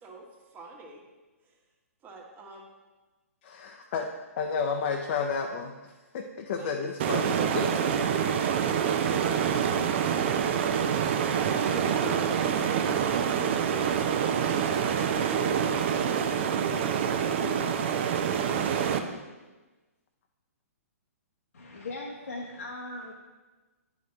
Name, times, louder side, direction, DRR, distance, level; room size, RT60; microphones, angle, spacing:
voice 1, 0.0-1.0 1.4-1.6 2.0-2.7 6.5-6.7 7.0-8.0, right 2 dB, 20° right, 0 dB, 1.3 m, -46 dB
voice 2, 3.4-4.1 4.4-7.7, left 5 dB, 50° left, 2 dB, 0.6 m, -32 dB
sound 1, 7.0-19.0, right 7 dB, 45° right, 0.6 m, -26 dB
voice 3, 21.5-23.1, left 2 dB, 75° left, -2 dB, 0.9 m, -39 dB
9.3 x 5.1 x 3.2 m, 1.2 s
figure-of-eight pair, 120°, 8 cm